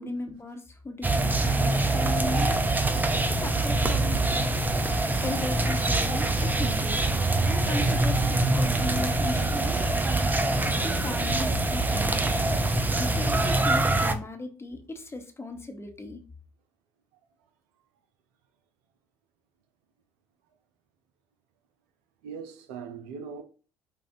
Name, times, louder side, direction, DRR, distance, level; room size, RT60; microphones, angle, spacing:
voice 1, 0.0-2.6 3.1-4.9 5.2-9.8 10.5-10.6 10.8-12.6 13.0-16.2, left 2 dB, 20° left, 1.0 m, -37 dB
sound 1, 1.0-14.1, right 2 dB, 15° right, 0.6 m, -24 dB
voice 2, 22.2-23.4, right 6 dB, 75° right, 0.6 m, -40 dB
5.0 x 2.4 x 2.7 m
hypercardioid pair, 55°, 11 cm